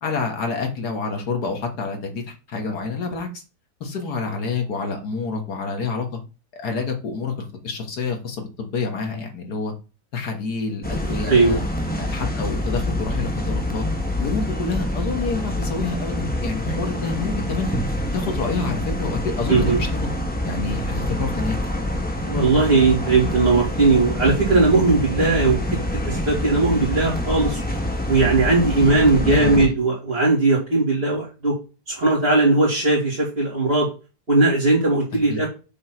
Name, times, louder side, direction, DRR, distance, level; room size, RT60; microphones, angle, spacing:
voice 1, 0.0-3.4 3.8-6.2 6.5-9.7 10.1-11.6 11.9-13.9 14.2-17.7 18.1-20.1 20.4-21.6 28.8-29.7 35.3-35.5, left 4 dB, 70° left, 3 dB, 2.0 m, -28 dB
sound 1, 10.8-29.7, left 1 dB, 5° left, 0.9 m, -26 dB
voice 2, 11.2-11.5 19.5-19.8 22.2-25.6 26.0-27.6 28.1-31.5 31.9-33.9 34.3-35.5, right 3 dB, 35° right, -8 dB, 2.8 m, -18 dB
6.4 x 3.7 x 5.8 m, 0.31 s
omnidirectional pair, 1.8 m